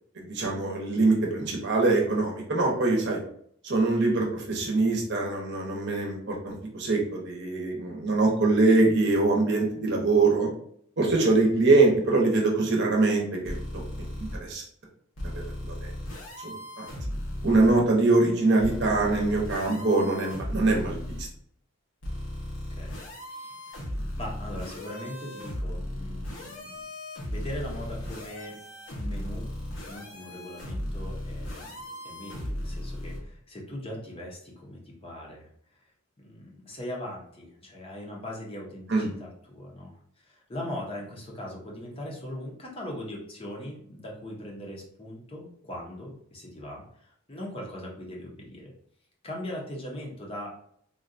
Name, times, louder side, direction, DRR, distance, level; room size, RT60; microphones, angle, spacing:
voice 1, 0.2-3.2 3.6-10.5 11.0-14.6 15.3-15.9 16.4-16.9 17.4-21.3 38.9-39.1, right 3 dB, 50° right, -1 dB, 0.7 m, -24 dB
sound 1, 13.4-14.4 15.2-17.7 18.6-21.2 22.0-33.2, left 1 dB, 65° left, 0.8 m, -36 dB
voice 2, 24.2-26.8 27.2-28.6 28.9-29.5 29.9-35.5 36.2-48.7 49.2-50.6, left 1 dB, 25° left, -2 dB, 0.6 m, -40 dB
3.7 x 2.2 x 2.5 m, 0.65 s
head